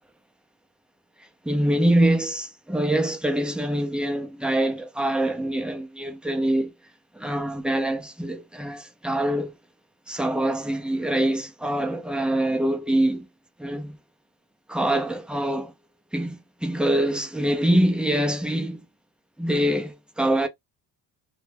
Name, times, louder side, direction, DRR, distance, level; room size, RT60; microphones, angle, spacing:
voice 1, 1.4-6.7 7.1-9.5 10.1-13.3 13.6-14.0 14.7-15.7 16.1-18.8 19.4-20.5, right 1 dB, 5° right, 0.4 m, -24 dB
2.2 x 2.0 x 3.2 m
cardioid pair, 115°, 40 cm